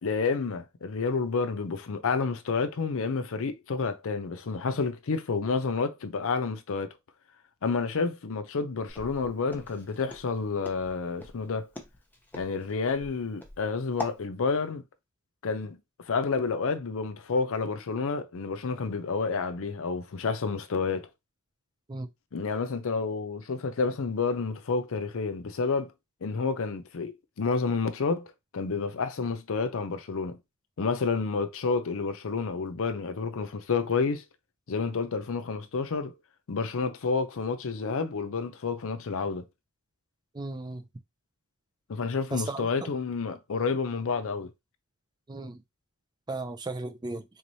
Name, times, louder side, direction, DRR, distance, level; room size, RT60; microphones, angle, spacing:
voice 1, 0.0-6.9 7.6-11.7 12.3-14.8 15.4-15.8 16.0-21.1 22.3-25.9 26.2-30.4 30.8-34.2 34.7-36.1 36.5-39.4 41.9-44.5, left 4 dB, 65° left, 0.6 m, -29 dB
Walk footsteps, 8.9-14.2, left 1 dB, 10° left, 0.8 m, -42 dB
voice 2, 40.3-40.8 42.3-42.7 45.3-45.6 46.3-47.2, right 2 dB, 20° right, 0.5 m, -35 dB
4.0 x 3.1 x 2.7 m
head